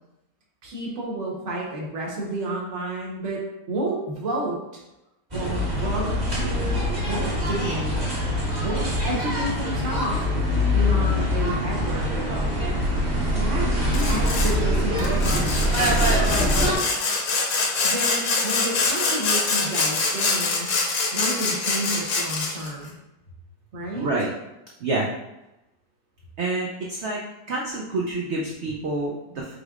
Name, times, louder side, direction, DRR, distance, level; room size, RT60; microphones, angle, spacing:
voice 1, 0.6-3.4 3.7-4.8 5.3-8.0 8.6-10.2 10.6-12.2 13.1-13.7 14.1-16.8 17.8-20.7 21.1-23.0 23.7-24.1, right 1 dB, 50° right, -3 dB, 1.2 m, -31 dB
sound 1, 5.3-16.8, equal, 25° right, 1.4 m, -23 dB
Sawing, 13.9-14.6 15.0-22.7, left 3 dB, 65° left, 1.1 m, -25 dB
voice 2, 24.0-24.3 24.8-25.1 26.4-27.2 27.5-29.5, right 2 dB, 75° right, -2 dB, 0.6 m, -27 dB
5.1 x 3.2 x 2.4 m, 0.93 s
omnidirectional pair, 1.8 m